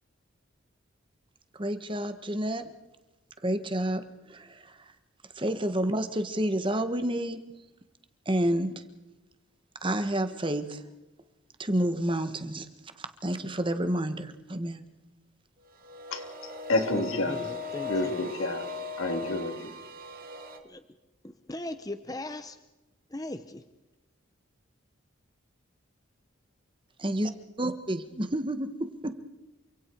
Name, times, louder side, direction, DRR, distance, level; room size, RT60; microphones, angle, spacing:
voice 1, 1.6-2.6 3.4-4.0 4.3-4.8 5.3-7.4 8.2-8.8 9.8-10.8 11.6-12.7 13.0-14.8 27.0-27.3 27.6-28.7 29.0-29.1, right 1 dB, 25° right, 9 dB, 1.5 m, -29 dB
sound 1, 15.8-20.6, left 4 dB, 40° right, 2.3 m, -38 dB
voice 2, 16.1-17.5 17.9-18.7 19.0-19.7, left 2 dB, 80° left, 4 dB, 3.6 m, -30 dB
voice 3, 16.9-18.2 20.6-20.8 21.2-22.6 23.1-23.6, left 1 dB, 15° left, 10 dB, 0.8 m, -38 dB
28.5 x 25.5 x 4.7 m, 1.1 s
head